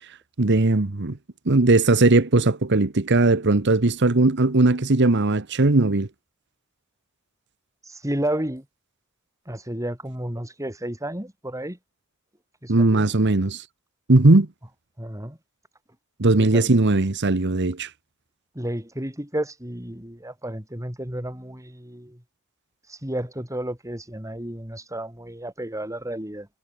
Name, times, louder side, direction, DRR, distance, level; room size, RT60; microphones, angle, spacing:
voice 1, 0.4-1.2 1.5-6.1 12.7-13.6 14.1-14.5 16.2-17.9, right 2 dB, 55° right, 1.1 m, -18 dB
voice 2, 7.8-8.7 9.5-11.8 12.6-13.1 15.0-15.4 16.4-16.9 18.5-22.2 22.9-26.5, right 1 dB, 15° right, 7.6 m, -32 dB
head